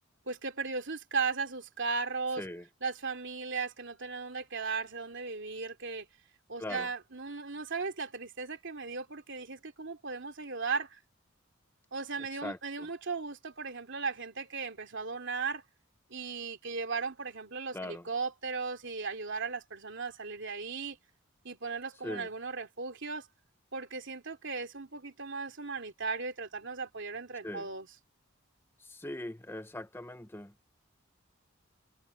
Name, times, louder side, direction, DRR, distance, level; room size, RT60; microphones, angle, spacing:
voice 1, 0.3-2.4 2.8-6.1 6.5-11.0 11.9-15.6 16.1-21.0 21.4-23.3 23.7-27.9, right 4 dB, 60° right, 3.1 m, -36 dB
voice 2, 17.7-18.1 22.0-22.3 27.4-27.7 28.8-30.7, left 1 dB, 10° left, 0.8 m, -40 dB
head